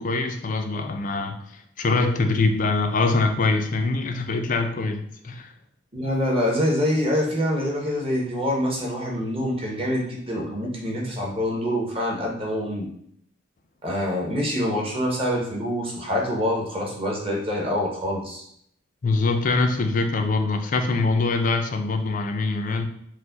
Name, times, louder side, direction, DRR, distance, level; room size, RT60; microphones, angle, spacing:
voice 1, 0.0-1.4 1.8-5.5 19.0-22.9, left 3 dB, 40° left, 5 dB, 0.4 m, -23 dB
voice 2, 5.9-12.9 13.8-18.4, equal, 25° right, -1 dB, 0.8 m, -25 dB
4.6 x 2.1 x 3.8 m, 0.70 s
head